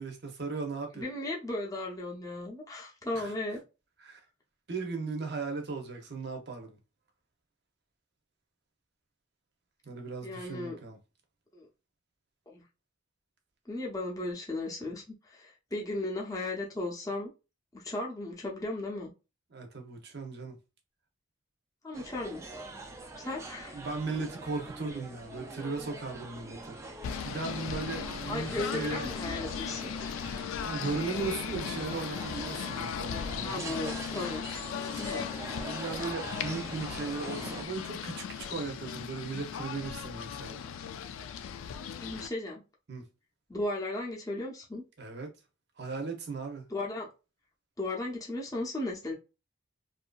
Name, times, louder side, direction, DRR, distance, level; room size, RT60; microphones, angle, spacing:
voice 1, 0.0-1.1 3.1-3.3 4.0-4.2 4.7-6.8 9.9-11.0 19.5-20.6 23.7-29.1 30.6-33.8 35.6-40.7 42.9-43.1 45.0-45.3 45.8-46.7, right 4 dB, 50° right, 0.7 m, -37 dB
voice 2, 0.9-3.6 10.2-10.8 11.5-11.7 12.5-12.6 13.7-17.3 17.7-19.1 21.8-22.4 23.2-23.8 28.3-29.9 33.4-34.5 35.0-35.3 42.0-42.6 43.5-44.8 46.7-47.1 47.8-49.1, left 2 dB, 15° left, 0.6 m, -36 dB
sound 1, 21.9-37.6, right 2 dB, 15° right, 0.3 m, -44 dB
Singing / Bird, 27.0-42.3, left 7 dB, 80° left, 0.3 m, -37 dB
2.7 x 2.5 x 2.3 m
head